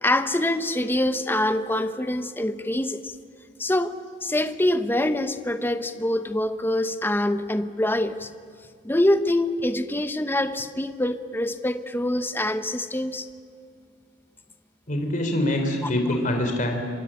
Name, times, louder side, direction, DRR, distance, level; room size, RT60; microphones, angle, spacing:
voice 1, 0.0-3.1 3.6-8.3 8.8-13.3 15.8-15.9, left 1 dB, 10° left, 9 dB, 1.0 m, -25 dB
voice 2, 14.9-16.8, left 1 dB, 45° left, 4 dB, 3.4 m, -24 dB
26.5 x 23.5 x 8.8 m, 2.2 s
head